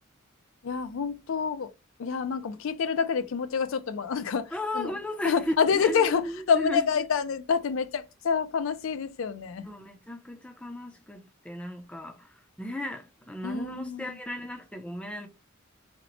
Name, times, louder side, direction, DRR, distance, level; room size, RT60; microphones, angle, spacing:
voice 1, 0.6-1.7 2.0-5.0 5.2-9.7 13.4-14.2, left 6 dB, 70° left, 0.4 m, -27 dB
voice 2, 4.5-6.9 9.6-15.3, left 1 dB, 5° left, 0.4 m, -35 dB
2.9 x 2.0 x 3.9 m
head